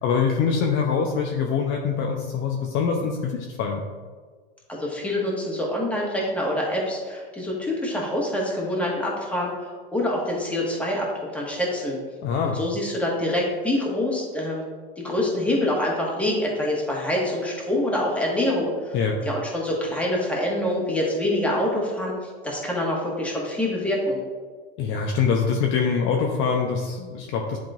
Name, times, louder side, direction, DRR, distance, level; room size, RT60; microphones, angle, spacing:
voice 1, 0.0-3.8 12.2-12.6 18.9-19.2 24.8-27.6, left 6 dB, 40° left, 2 dB, 0.7 m, -24 dB
voice 2, 4.7-11.1 11.3-11.9 12.5-14.6 15.0-18.9 19.2-22.1 22.4-24.2, left 1 dB, 5° left, -3 dB, 1.6 m, -25 dB
10.5 x 3.6 x 2.5 m, 1.5 s
hypercardioid pair, 110°, 30 cm